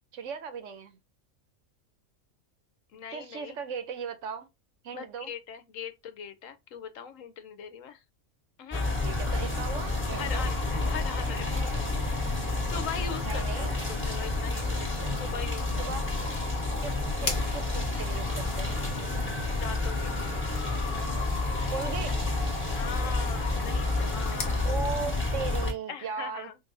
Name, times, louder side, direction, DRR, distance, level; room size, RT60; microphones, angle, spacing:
voice 1, 0.1-1.0 3.1-4.5 4.8-5.3 9.0-10.5 13.2-13.8 15.8-16.1 16.8-17.0 17.2-18.7 21.7-22.2 24.6-26.5, right 6 dB, 65° right, 1.1 m, -37 dB
voice 2, 2.9-3.6 4.9-8.0 8.6-9.0 9.9-11.8 12.2-16.1 19.5-20.3 22.7-24.7 25.9-26.6, left 7 dB, 70° left, 1.1 m, -41 dB
sound 1, 8.7-25.7, left 2 dB, 10° left, 1.6 m, -29 dB
sound 2, 17.2-24.6, left 3 dB, 40° left, 1.1 m, -42 dB
5.1 x 2.6 x 2.6 m
omnidirectional pair, 1.4 m